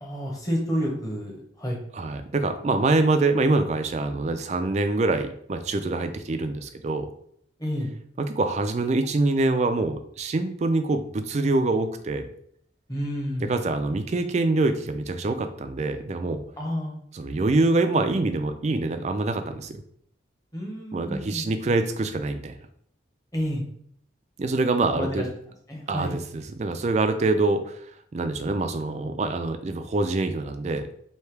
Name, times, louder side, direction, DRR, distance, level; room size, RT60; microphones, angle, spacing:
voice 1, 0.0-1.8 7.6-7.9 12.9-13.5 16.6-17.0 20.5-21.5 23.3-23.6 24.9-25.3 25.7-26.1, equal, 20° left, -1 dB, 0.9 m, -30 dB
voice 2, 1.9-7.1 8.2-12.3 13.5-16.4 17.1-19.8 20.9-22.5 24.4-25.2 25.9-27.8 28.1-30.9, right 2 dB, 35° right, 8 dB, 0.3 m, -25 dB
3.3 x 2.7 x 4.5 m, 0.66 s
head